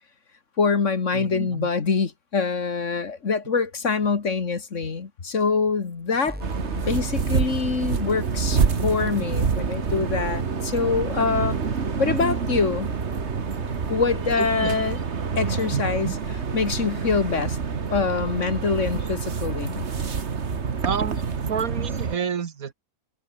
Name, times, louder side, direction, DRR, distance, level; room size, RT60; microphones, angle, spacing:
voice 1, 0.6-6.4 6.7-11.6 12.0-12.9 13.9-15.0 15.4-16.1 16.5-17.6 17.9-19.8, left 5 dB, 50° left, 2.1 m, -24 dB
voice 2, 1.1-1.7 14.4-14.7 15.7-16.2 20.8-21.2 21.5-22.7, right 7 dB, 65° right, 1.7 m, -29 dB
sound 1, 6.3-14.3, equal, 5° right, 5.4 m, -40 dB
sound 2, 6.4-22.2, right 5 dB, 45° right, 1.7 m, -27 dB
omnidirectional pair, 1.6 m